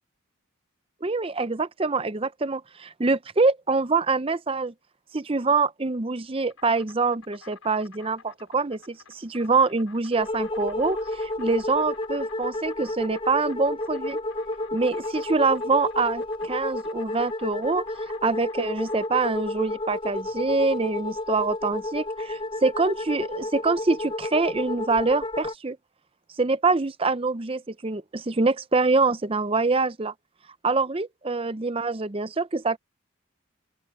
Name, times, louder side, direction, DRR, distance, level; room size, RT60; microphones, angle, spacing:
voice 1, 1.0-4.7 5.1-14.2 14.7-17.8 18.2-25.8 26.4-30.1 30.6-32.8, right 3 dB, 25° right, 0.6 m, -25 dB
Insect, 6.1-19.2, left 6 dB, 90° left, 6.7 m, -52 dB
sound 1, 10.2-25.5, left 1 dB, 25° left, 5.1 m, -31 dB
open air
head